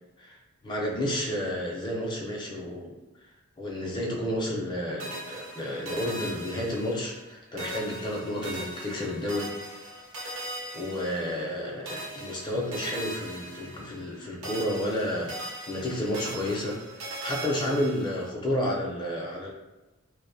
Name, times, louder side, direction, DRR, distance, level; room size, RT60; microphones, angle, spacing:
voice 1, 0.2-3.0 3.6-9.5 10.7-19.5, left 1 dB, 20° left, -2 dB, 0.4 m, -31 dB
sound 1, 5.0-7.3 7.6-11.6 11.9-14.2 14.4-18.3, right 1 dB, 85° right, 0.7 m, -40 dB
2.4 x 2.0 x 2.6 m, 1.1 s
head